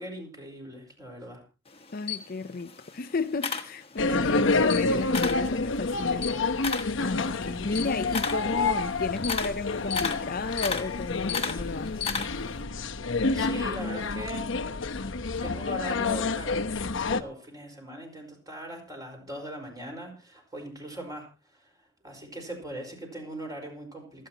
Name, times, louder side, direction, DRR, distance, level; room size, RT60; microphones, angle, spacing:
voice 1, 0.0-1.4 4.1-4.4 13.3-14.5 15.2-16.7 17.1-21.7 22.0-24.3, right 1 dB, 20° right, 4.7 m, -40 dB
Camera, 1.7-4.2 4.6-5.5 5.9-12.6, left 5 dB, 30° left, 1.4 m, -34 dB
voice 2, 1.9-6.6 7.0-12.0, left 3 dB, 50° left, 0.6 m, -33 dB
sound 1, 4.0-17.2, left 3 dB, 70° left, 1.0 m, -28 dB
28.0 x 9.5 x 2.9 m
head